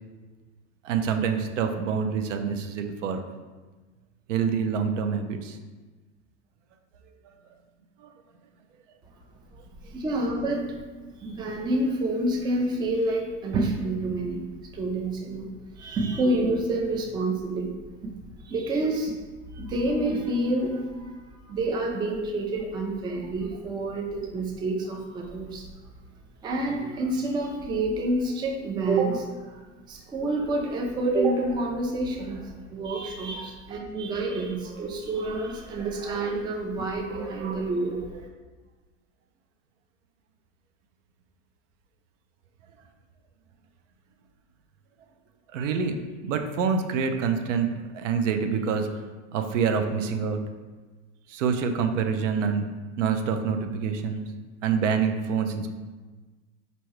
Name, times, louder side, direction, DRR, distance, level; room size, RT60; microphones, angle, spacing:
voice 1, 0.8-3.2 4.3-5.6 7.2-7.3 8.0-8.1 32.8-33.1 33.3-33.8 45.5-45.9 46.2-47.7 47.9-48.9 49.3-50.4 51.3-52.7 53.0-54.2 54.6-55.7, right 6 dB, 75° right, 6 dB, 0.6 m, -26 dB
voice 2, 9.9-10.8 11.2-14.4 14.7-15.5 15.8-17.7 18.0-18.1 18.4-19.2 19.5-21.2 21.5-25.7 26.4-29.6 29.9-38.3, right 2 dB, 15° right, 1 dB, 0.4 m, -28 dB
4.4 x 2.7 x 3.1 m, 1.3 s
hypercardioid pair, 100°, 37 cm